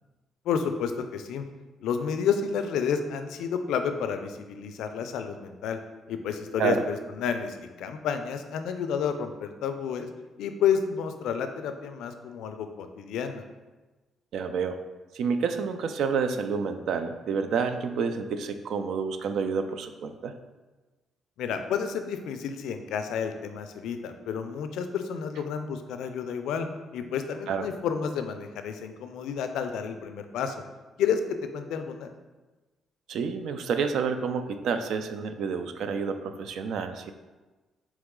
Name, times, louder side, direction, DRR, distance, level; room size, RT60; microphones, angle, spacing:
voice 1, 0.5-1.4 1.8-5.8 6.1-10.1 10.4-13.4 21.4-26.7 26.9-30.6 31.0-32.1, left 7 dB, 85° left, 8 dB, 0.3 m, -30 dB
voice 2, 14.3-14.8 15.1-20.3 27.5-27.7 33.1-37.1, right 5 dB, 75° right, 8 dB, 0.3 m, -29 dB
3.9 x 3.1 x 3.6 m, 1.2 s
cardioid pair, 90°, 0 cm